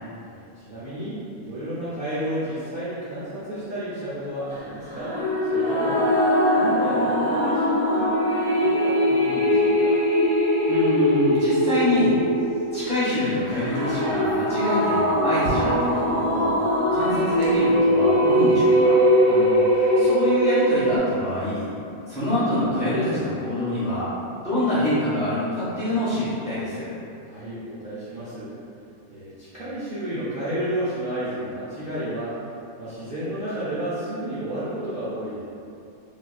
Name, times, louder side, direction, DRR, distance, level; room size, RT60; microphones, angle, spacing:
voice 1, 0.2-6.1 6.5-10.0 27.2-28.5 29.1-32.4 32.8-35.4, right 1 dB, 50° right, -13 dB, 0.7 m, -32 dB
sound 1, 4.9-21.0, equal, 20° right, 0.9 m, -21 dB
voice 2, 10.7-12.2 12.7-16.5 16.9-21.7 22.1-24.1 24.4-26.9, left 1 dB, 30° left, -13 dB, 0.9 m, -26 dB
sound 2, 14.2-18.8, equal, 85° right, 1.2 m, -37 dB
3.3 x 2.9 x 2.3 m, 2.6 s
omnidirectional pair, 1.7 m